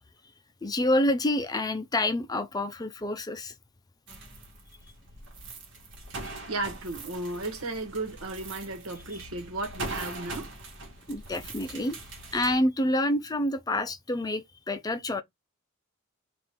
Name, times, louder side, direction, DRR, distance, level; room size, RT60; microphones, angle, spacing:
voice 1, 0.6-3.5 11.1-12.0 12.3-15.2, left 1 dB, 20° left, 0.5 m, -27 dB
sound 1, 4.1-12.5, right 2 dB, 60° right, 1.4 m, -42 dB
voice 2, 6.5-10.5, right 2 dB, 80° right, 1.3 m, -34 dB
3.6 x 2.5 x 4.4 m
head